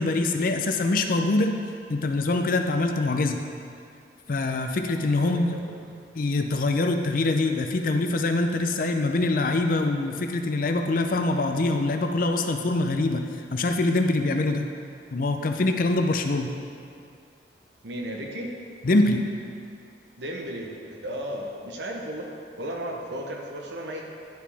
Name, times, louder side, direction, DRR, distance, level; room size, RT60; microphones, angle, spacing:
voice 1, 0.0-1.5 1.9-3.4 4.3-5.6 6.1-13.2 13.5-14.7 15.1-16.5 18.8-19.2, left 2 dB, 50° left, 5 dB, 0.5 m, -24 dB
voice 2, 5.2-5.7 17.8-18.5 20.2-22.3 22.6-24.0, equal, 85° right, 0 dB, 0.9 m, -34 dB
10.5 x 4.8 x 3.4 m, 2.3 s
head